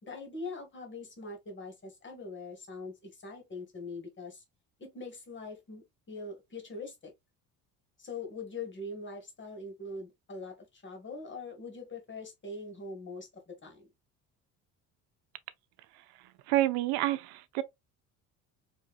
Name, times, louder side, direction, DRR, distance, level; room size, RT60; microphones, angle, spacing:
voice 1, 0.0-4.4 4.8-7.1 8.0-13.9, left 3 dB, 30° left, 1.9 m, -42 dB
voice 2, 16.5-17.6, right 15 dB, 80° right, 0.7 m, -28 dB
4.7 x 3.1 x 2.4 m
supercardioid pair, 85°, 37 cm